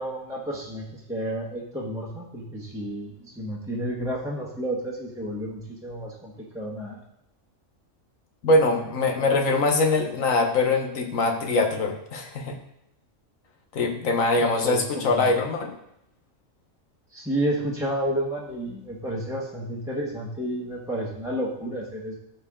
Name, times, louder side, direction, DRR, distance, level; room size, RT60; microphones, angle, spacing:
voice 1, 0.0-7.0 14.4-15.3 17.1-22.1, right 1 dB, 5° right, -5 dB, 1.2 m, -31 dB
voice 2, 8.4-12.6 13.7-15.7, left 2 dB, 80° left, 4 dB, 1.5 m, -23 dB
13.0 x 4.6 x 3.7 m, 0.79 s
omnidirectional pair, 1.4 m